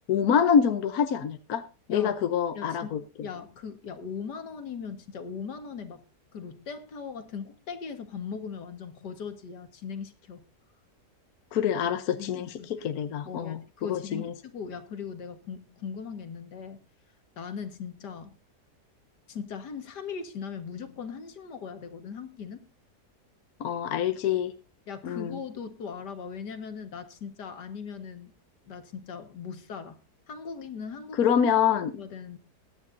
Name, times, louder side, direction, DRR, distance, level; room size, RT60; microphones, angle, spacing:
voice 1, 0.1-1.6 1.9-3.0 11.5-14.3 23.6-24.5 25.0-25.4 31.1-31.9, left 8 dB, 65° left, 9 dB, 1.3 m, -26 dB
voice 2, 2.5-2.9 3.2-6.0 6.3-10.4 11.8-12.7 13.3-16.8 17.4-18.3 19.3-22.6 24.9-28.3 28.7-30.0 30.3-31.3 32.0-32.4, left 6 dB, 80° left, 8 dB, 2.1 m, -39 dB
21.0 x 9.8 x 2.6 m, 0.30 s
omnidirectional pair, 1.8 m